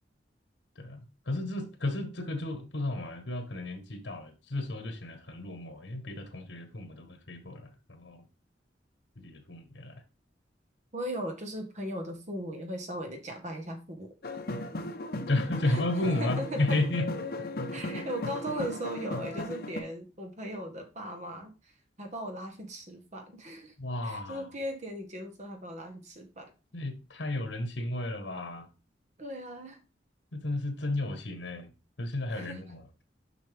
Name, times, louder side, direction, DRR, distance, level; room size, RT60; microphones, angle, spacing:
voice 1, 0.8-8.2 9.2-9.9 15.3-17.1 23.8-24.5 26.7-28.7 30.3-31.7 32.0-32.8, left 2 dB, 75° left, 1.3 m, -33 dB
voice 2, 10.9-14.1 15.6-16.8 17.7-21.5 22.0-23.7 24.0-26.5 29.2-29.8 32.3-32.6, equal, 40° right, 1.5 m, -38 dB
sound 1, 14.2-19.8, left 2 dB, 55° left, 0.9 m, -36 dB
6.8 x 5.7 x 3.5 m
head